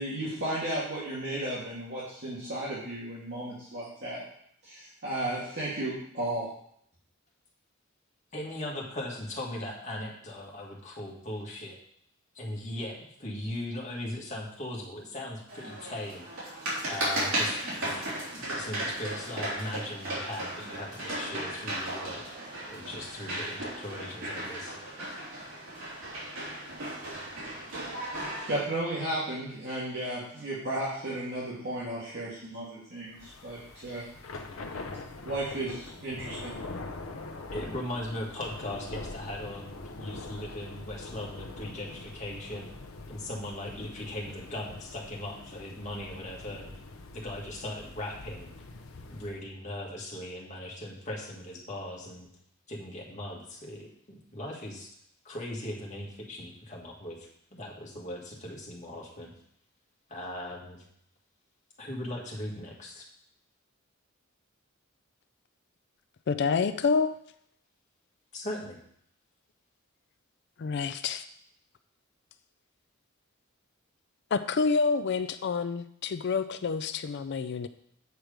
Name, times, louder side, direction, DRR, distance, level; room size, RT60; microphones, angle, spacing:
voice 1, 0.0-4.2 4.6-6.5 28.5-34.0 35.2-36.5, right 1 dB, 55° right, -9 dB, 2.3 m, -34 dB
voice 2, 8.3-11.8 12.3-16.3 16.8-22.2 22.7-24.8 37.5-42.7 43.1-46.7 47.1-48.5 49.1-52.3 52.7-54.9 55.2-59.3 60.1-60.8 61.8-63.1 68.3-68.8, left 1 dB, 35° left, -2 dB, 1.7 m, -39 dB
sound 1, 15.5-28.6, right 1 dB, 75° right, 3.2 m, -35 dB
Thunder / Rain, 33.1-49.4, left 3 dB, 85° left, 0.7 m, -43 dB
voice 3, 66.3-67.1 70.6-71.2 74.3-77.7, left 5 dB, 55° left, 11 dB, 0.4 m, -28 dB
8.1 x 4.6 x 5.0 m, 0.68 s
head